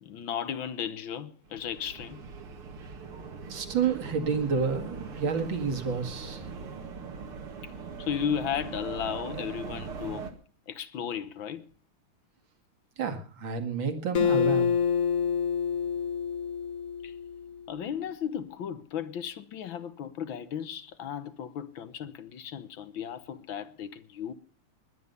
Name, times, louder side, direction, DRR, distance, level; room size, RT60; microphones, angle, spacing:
voice 1, 0.0-2.2 7.6-7.7 8.0-10.3 10.7-11.6 17.0-17.1 17.7-24.3, left 8 dB, 65° left, 1.8 m, -35 dB
sound 1, 1.5-10.3, right 5 dB, 80° right, 2.8 m, -41 dB
voice 2, 3.5-6.4 13.0-14.7, right 5 dB, 60° right, 2.6 m, -29 dB
Acoustic guitar, 14.1-17.6, left 7 dB, 50° left, 1.2 m, -27 dB
20.5 x 10.0 x 5.5 m
omnidirectional pair, 2.4 m